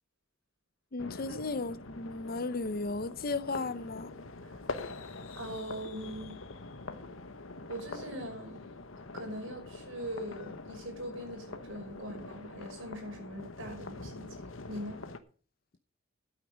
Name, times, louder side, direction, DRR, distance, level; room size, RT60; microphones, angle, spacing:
voice 1, 0.9-4.1, left 3 dB, 45° left, 0.7 m, -35 dB
sound 1, 1.0-15.2, left 3 dB, 75° left, 1.2 m, -44 dB
voice 2, 5.3-6.4 7.7-8.7 9.1-15.0, equal, 75° right, 5.5 m, -41 dB
12.5 x 8.7 x 5.1 m
head